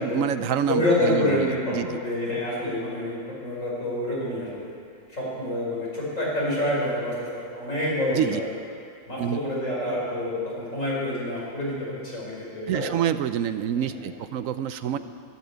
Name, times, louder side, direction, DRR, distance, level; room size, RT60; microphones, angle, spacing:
voice 1, 0.0-2.0 8.1-8.4 9.2-9.4 12.7-15.0, right 9 dB, 75° right, 12 dB, 1.0 m, -27 dB
voice 2, 0.7-4.7 5.1-8.5 9.1-13.0 13.8-14.1 14.9-15.0, left 1 dB, 65° left, -5 dB, 5.2 m, -27 dB
13.0 x 12.0 x 8.1 m, 2.2 s
omnidirectional pair, 1.5 m